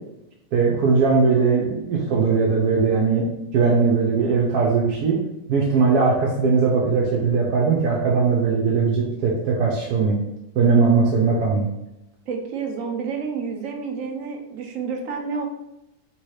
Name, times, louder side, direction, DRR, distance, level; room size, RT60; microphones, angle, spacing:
voice 1, 0.5-3.3 3.5-5.2 5.5-10.2 10.6-11.7, right 5 dB, 85° right, -3 dB, 1.2 m, -19 dB
voice 2, 12.3-15.4, right 5 dB, 65° right, 3 dB, 1.0 m, -29 dB
3.4 x 3.0 x 4.7 m, 0.91 s
omnidirectional pair, 1.6 m